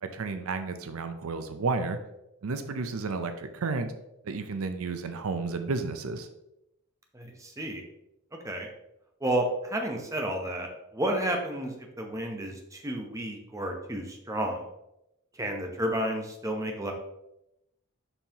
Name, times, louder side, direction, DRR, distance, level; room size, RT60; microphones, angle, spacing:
voice 1, 0.0-2.0 2.4-3.9 4.2-6.3, right 4 dB, 75° right, 9 dB, 0.5 m, -32 dB
voice 2, 7.1-7.8 8.4-8.7 9.2-14.7 15.3-16.9, right 1 dB, 15° right, 2 dB, 0.8 m, -31 dB
6.9 x 5.5 x 2.9 m, 0.86 s
head